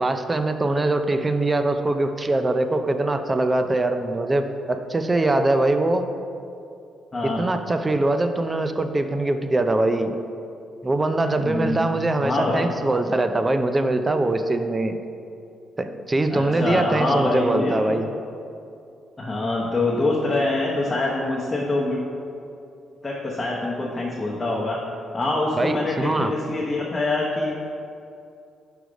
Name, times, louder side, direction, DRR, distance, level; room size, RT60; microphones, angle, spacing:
voice 1, 0.0-6.1 7.2-10.1 10.8-15.0 15.8-18.1 25.6-26.3, right 2 dB, 20° right, 8 dB, 0.4 m, -22 dB
voice 2, 7.1-7.4 11.4-11.8 12.2-12.7 16.3-17.9 19.2-22.0 23.0-24.8 25.1-27.5, left 2 dB, 20° left, -4 dB, 0.9 m, -25 dB
4.9 x 4.8 x 5.1 m, 2.6 s
cardioid pair, 90°, 0 cm